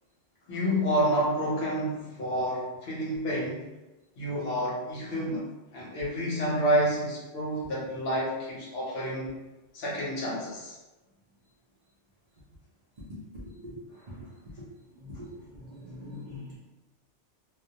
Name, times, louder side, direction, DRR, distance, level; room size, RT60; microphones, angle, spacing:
voice 1, 0.5-3.7 4.2-9.4 9.7-10.8, equal, 65° left, -4 dB, 0.9 m, -29 dB
voice 2, 13.4-13.8 14.1-14.2 14.9-16.6, left 1 dB, 50° right, -9 dB, 0.5 m, -43 dB
2.2 x 2.1 x 2.7 m, 1.0 s
omnidirectional pair, 1.2 m